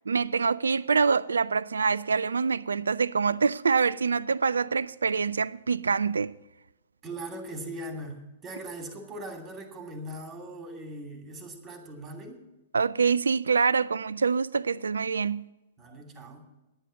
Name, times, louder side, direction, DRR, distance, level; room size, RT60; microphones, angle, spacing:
voice 1, 0.1-6.3 12.7-15.4, right 5 dB, 75° right, 0.4 m, -25 dB
voice 2, 7.0-12.4 15.8-16.5, right 1 dB, 20° right, 2.6 m, -40 dB
10.5 x 9.2 x 7.4 m
figure-of-eight pair, 110°, 0 cm